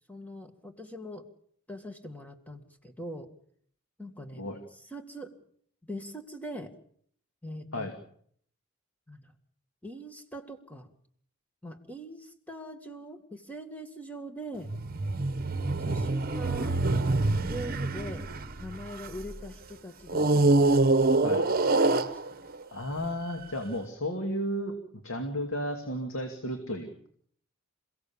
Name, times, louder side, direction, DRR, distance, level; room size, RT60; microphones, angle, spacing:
voice 1, 0.1-1.3 1.7-3.3 4.0-5.3 5.8-6.7 7.4-7.9 9.1-9.3 9.8-10.9 11.6-14.7 15.8-16.8 17.4-18.3 18.6-21.4 21.8-22.5, equal, 5° left, 6 dB, 2.1 m, -42 dB
sound 1, 14.7-19.4 20.1-22.6 23.3-23.4, right 2 dB, 45° right, 1.2 m, -25 dB
voice 2, 22.7-24.7 25.0-27.1, equal, 65° left, 4 dB, 2.6 m, -33 dB
28.0 x 16.5 x 7.2 m, 0.64 s
head